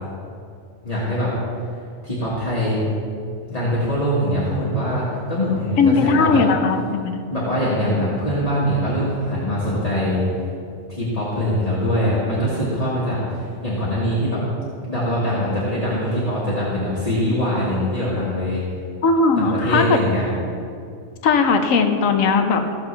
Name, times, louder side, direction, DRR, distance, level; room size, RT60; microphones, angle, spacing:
voice 1, 0.8-1.3 2.0-2.8 3.5-6.4 7.3-10.3 10.9-14.4 14.9-18.6 19.4-20.2, equal, 30° left, -8 dB, 1.7 m, -23 dB
voice 2, 5.8-7.2 19.0-20.0 21.2-22.6, left 4 dB, 75° left, 6 dB, 1.2 m, -18 dB
15.0 x 7.1 x 3.3 m, 2.4 s
omnidirectional pair, 1.4 m